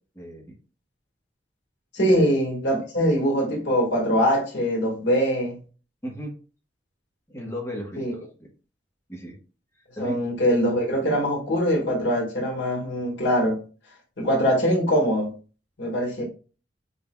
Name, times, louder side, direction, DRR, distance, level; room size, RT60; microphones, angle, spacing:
voice 1, 1.9-5.6 8.0-8.1 10.0-13.6 14.2-15.3 15.8-16.2, equal, 75° left, 1.7 m, -23 dB
voice 2, 6.0-6.4 7.3-8.5 9.1-9.4 10.0-10.3, equal, 15° left, 1.1 m, -35 dB
5.5 x 3.8 x 2.3 m
head